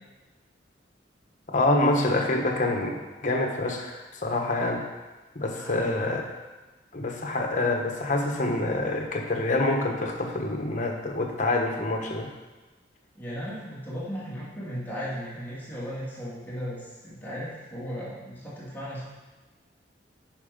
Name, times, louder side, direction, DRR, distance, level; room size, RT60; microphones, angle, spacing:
voice 1, 1.5-4.8 5.3-6.3 6.9-12.3, left 2 dB, 45° left, 2 dB, 1.2 m, -26 dB
voice 2, 5.5-6.2 13.1-19.0, equal, 10° left, -8 dB, 2.2 m, -36 dB
9.4 x 5.5 x 5.2 m, 1.2 s
head